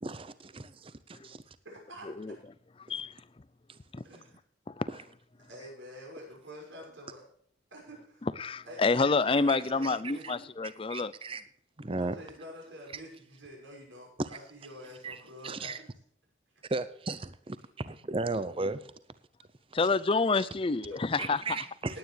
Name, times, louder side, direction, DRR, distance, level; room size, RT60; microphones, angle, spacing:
voice 1, 0.0-1.4 3.7-3.8 4.9-5.0 9.5-10.0 10.2-10.3 10.6-11.4 11.8-12.2 14.2-14.3 15.0-15.2 15.4-15.8 16.7-18.8 21.2-22.0, right 3 dB, 30° right, 0.6 m, -35 dB
voice 2, 1.6-2.4 4.0-4.4 5.4-7.2 7.7-8.3 8.7-10.4 12.0-15.7 20.8-21.0 21.9-22.0, equal, 75° right, 6.1 m, -47 dB
voice 3, 8.4-11.1 19.7-21.4, left 4 dB, 25° left, 0.4 m, -28 dB
18.5 x 9.5 x 3.3 m
head